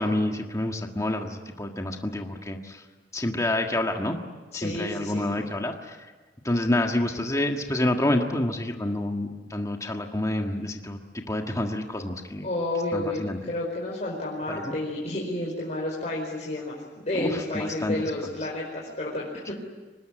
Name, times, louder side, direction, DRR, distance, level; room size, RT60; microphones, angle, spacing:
voice 1, 0.0-2.8 3.1-4.2 4.5-6.0 6.4-12.5 12.9-13.4 14.5-14.8 17.2-18.1 19.5-19.6, left 1 dB, 20° left, 3 dB, 1.6 m, -28 dB
voice 2, 4.5-5.3 12.4-16.8 17.0-19.5, left 1 dB, 40° left, -4 dB, 4.9 m, -30 dB
25.0 x 20.0 x 10.0 m, 1.3 s
head